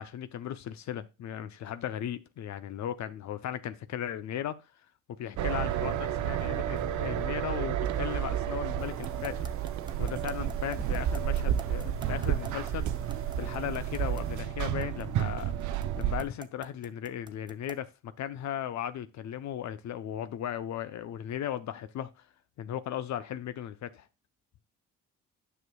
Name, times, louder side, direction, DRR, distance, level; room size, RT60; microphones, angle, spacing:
voice 1, 0.0-4.5 5.2-9.5 10.0-12.9 13.4-15.5 16.0-22.1 22.6-24.1, left 10 dB, 65° left, 0.6 m, -36 dB
sound 1, 5.4-16.2, right 10 dB, 75° right, 0.7 m, -31 dB
sound 2, 8.8-14.4, right 5 dB, 45° right, 1.2 m, -45 dB
sound 3, 9.0-17.9, right 4 dB, 15° right, 0.7 m, -46 dB
9.6 x 6.3 x 2.3 m
cardioid pair, 90°, 30 cm